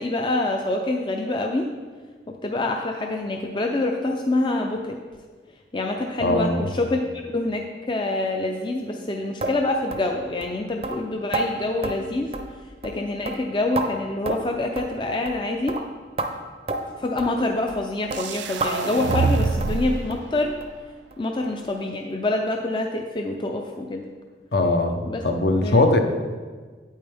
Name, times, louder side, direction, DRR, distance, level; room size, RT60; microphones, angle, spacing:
voice 1, 0.0-1.7 2.3-5.0 5.7-12.3 12.8-15.8 16.8-20.5 21.2-24.1 25.1-25.3 25.6-25.8, left 2 dB, 25° left, 2 dB, 0.4 m, -26 dB
voice 2, 6.2-6.6 24.5-25.0 25.2-26.0, left 2 dB, 60° left, 5 dB, 0.8 m, -20 dB
sound 1, 9.4-9.6 9.9-10.1 10.4-10.5 10.8-11.0 11.3-11.5 11.8-12.0 12.3-12.6 12.8-13.0 13.3-13.9 14.3-14.5 14.8-14.9 15.3-15.4 15.7-15.8 16.2-16.3 16.7-16.8 17.2-17.3 17.7-17.8 18.1-18.2 18.6-18.7 19.1-19.3 19.6-19.8 20.1-20.3 20.6-20.7 21.1-21.2 21.6-21.7, right 2 dB, 35° right, 0.6 m, -29 dB
sound 2, 18.1-20.1, right 4 dB, 80° right, 0.5 m, -25 dB
8.8 x 8.7 x 3.4 m, 1.5 s
head